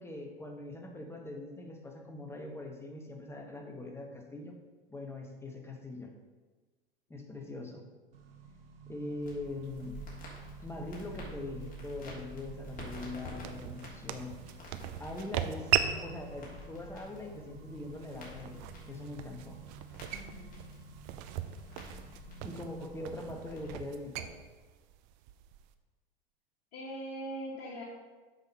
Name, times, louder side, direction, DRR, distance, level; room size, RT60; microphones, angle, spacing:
voice 1, 0.0-4.6 4.9-6.1 7.1-7.8 8.9-10.0 10.6-14.3 15.0-15.7 16.0-19.6 22.4-24.3, left 2 dB, 10° left, 2 dB, 1.5 m, -42 dB
Accelerating revving vroom, 8.1-23.5, right 6 dB, 75° right, 1.1 m, -52 dB
Crackle, 9.2-23.7, left 1 dB, 30° left, 3.2 m, -49 dB
sound 1, 9.6-25.7, right 11 dB, 50° right, 0.7 m, -40 dB
voice 2, 20.1-20.6 26.7-27.8, right 1 dB, 55° left, -6 dB, 2.1 m, -41 dB
7.9 x 6.0 x 5.6 m, 1.3 s
figure-of-eight pair, 80°, 30 cm